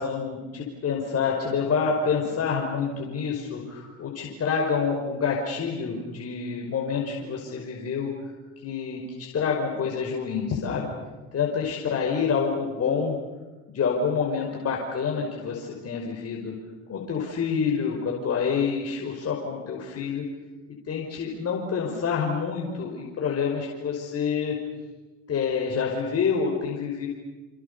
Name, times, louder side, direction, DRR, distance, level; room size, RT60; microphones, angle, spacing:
voice 1, 0.0-8.1 8.6-9.0 9.3-10.9 11.3-13.2 13.7-16.5 16.9-20.2 20.9-24.6 25.3-27.1, left 6 dB, 45° left, 0 dB, 5.6 m, -27 dB
28.0 x 27.0 x 7.0 m, 1.2 s
supercardioid pair, 80°, 35 cm